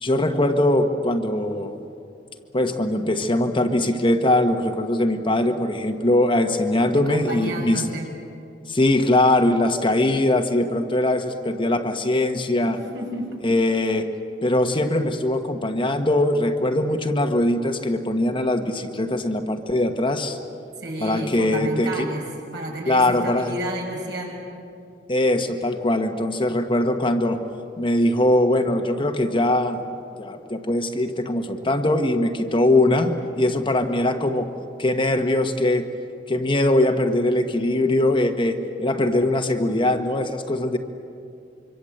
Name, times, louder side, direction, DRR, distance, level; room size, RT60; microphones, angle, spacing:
voice 1, 0.0-1.8 2.5-7.8 8.7-12.8 13.4-14.1 14.4-20.4 21.0-22.1 22.9-23.5 25.1-27.4 27.8-29.8 30.2-34.5 34.8-35.9 36.3-40.8, left 1 dB, 30° left, 5 dB, 1.3 m, -21 dB
voice 2, 6.9-8.1 12.7-13.3 20.8-22.2 22.5-24.5, right 1 dB, 65° right, 0 dB, 6.2 m, -31 dB
25.5 x 24.5 x 7.9 m, 2.5 s
head